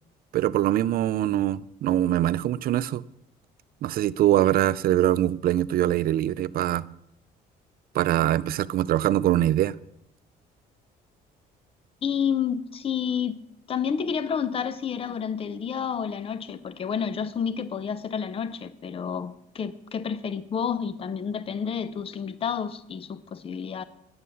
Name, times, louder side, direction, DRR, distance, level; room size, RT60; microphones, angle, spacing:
voice 1, 0.3-3.0 3.8-6.9 7.9-9.8, right 13 dB, 60° right, 0.5 m, -23 dB
voice 2, 12.0-13.4 13.7-23.8, left 7 dB, 35° left, 0.7 m, -30 dB
11.0 x 8.8 x 7.0 m
cardioid pair, 110°, 17 cm